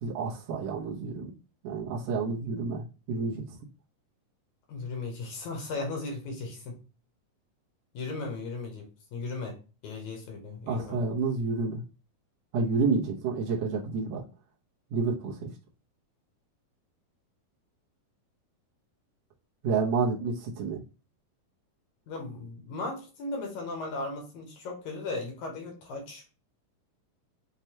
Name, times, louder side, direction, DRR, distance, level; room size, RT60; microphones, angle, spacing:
voice 1, 0.0-1.3 1.6-3.4 10.7-11.8 12.5-14.2 14.9-15.5 19.6-20.8, right 4 dB, 70° right, -2 dB, 1.6 m, -29 dB
voice 2, 4.7-6.8 7.9-9.6 9.8-11.0 22.1-26.3, left 3 dB, 65° left, 2 dB, 2.0 m, -36 dB
6.4 x 2.2 x 2.8 m, 0.33 s
omnidirectional pair, 3.9 m